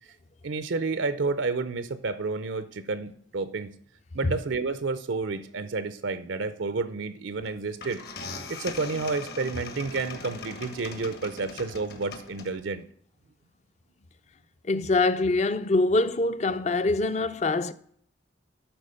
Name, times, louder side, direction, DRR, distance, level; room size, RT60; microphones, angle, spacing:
voice 1, 0.4-3.7 4.1-8.0 8.5-12.9, right 3 dB, 85° right, 0.6 m, -30 dB
sound 1, 7.4-7.5 7.8-12.8, left 4 dB, 55° left, 1.3 m, -40 dB
voice 2, 14.7-17.7, left 2 dB, 40° left, 0.5 m, -24 dB
11.5 x 4.4 x 5.5 m
head